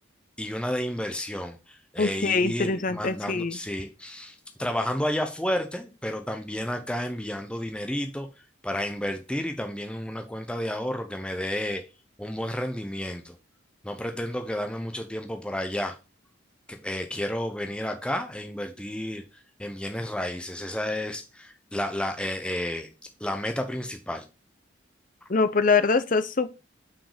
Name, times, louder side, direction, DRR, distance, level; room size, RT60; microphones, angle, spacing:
voice 1, 0.4-8.3 8.6-11.8 12.2-13.4 13.8-16.0 16.7-19.2 19.6-22.9 23.2-24.3, left 1 dB, 5° left, 0.8 m, -31 dB
voice 2, 2.0-3.6 25.3-26.5, left 4 dB, 45° left, 0.6 m, -24 dB
6.0 x 5.0 x 5.0 m
head